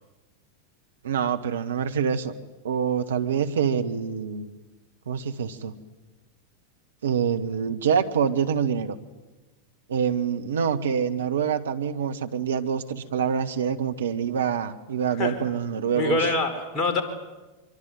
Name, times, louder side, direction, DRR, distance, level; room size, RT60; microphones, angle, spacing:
voice 1, 1.0-2.3 2.6-4.5 5.1-5.7 7.0-9.0 9.9-16.2, right 7 dB, 65° right, 7 dB, 1.5 m, -26 dB
voice 2, 15.9-17.0, left 3 dB, 25° left, 4 dB, 4.9 m, -24 dB
24.5 x 24.0 x 9.5 m, 1.2 s
figure-of-eight pair, 90°, 0 cm